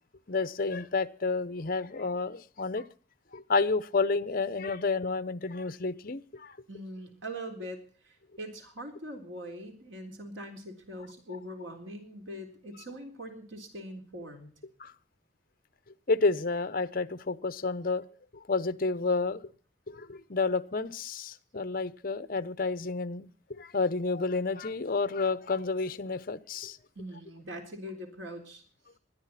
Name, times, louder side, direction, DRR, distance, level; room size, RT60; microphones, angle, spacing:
voice 1, 0.3-2.8 3.3-6.5 14.8-14.9 16.1-18.0 18.5-19.4 19.9-26.8, left 3 dB, 50° left, 0.9 m, -30 dB
voice 2, 6.7-14.5 27.0-28.6, equal, 85° right, 3.8 m, -42 dB
21.0 x 13.0 x 4.2 m
head